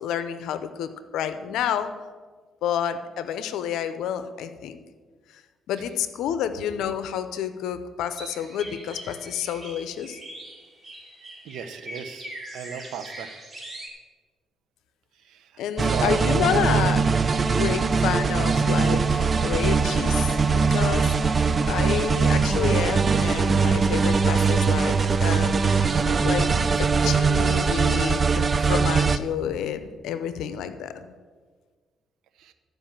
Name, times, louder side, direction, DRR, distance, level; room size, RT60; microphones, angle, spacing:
voice 1, 0.0-1.9 2.6-4.8 5.7-10.2 15.6-17.1 17.3-21.4 21.7-26.0 26.2-26.5 26.8-31.1, left 9 dB, 85° left, 11 dB, 0.7 m, -29 dB
sound 1, 8.1-13.9, right 1 dB, 20° right, 2.8 m, -41 dB
voice 2, 11.4-12.3 12.5-13.3 15.8-16.2 32.4-32.5, right 8 dB, 80° right, 8 dB, 0.8 m, -35 dB
sound 2, 15.8-29.2, right 5 dB, 35° right, 0.5 m, -21 dB
13.5 x 5.3 x 7.4 m, 1.5 s
cardioid pair, 90°, 0 cm